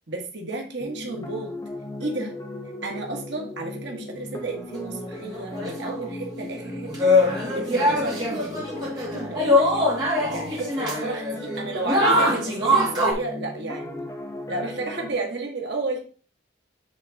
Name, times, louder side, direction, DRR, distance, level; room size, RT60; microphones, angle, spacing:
voice 1, 0.1-1.5 2.0-2.3 2.8-7.1 7.5-9.9 10.3-14.1 14.5-16.0, right 2 dB, 70° right, 1 dB, 1.4 m, -32 dB
sound 1, 0.8-15.1, left 1 dB, 15° left, 0.8 m, -37 dB
sound 2, 5.3-6.1 6.6-13.1, left 1 dB, 25° right, 2.4 m, -23 dB
8.7 x 3.7 x 4.0 m, 0.39 s
head